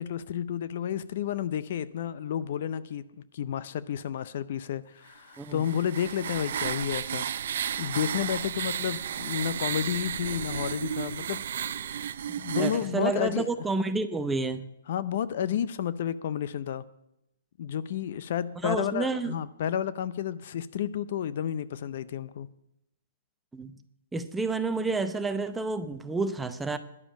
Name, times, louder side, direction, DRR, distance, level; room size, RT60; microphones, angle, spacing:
voice 1, 0.0-3.0 3.3-7.3 7.8-11.4 12.4-13.5 14.9-16.8 17.6-22.5, left 9 dB, 55° left, 15 dB, 0.5 m, -31 dB
sound 1, 5.4-12.9, right 9 dB, 60° right, 0.5 m, -33 dB
voice 2, 12.3-14.7 18.6-19.3 23.5-23.8 24.1-26.8, right 3 dB, 10° right, 10 dB, 0.7 m, -30 dB
11.0 x 7.0 x 8.9 m, 0.83 s
hypercardioid pair, 140°, 0 cm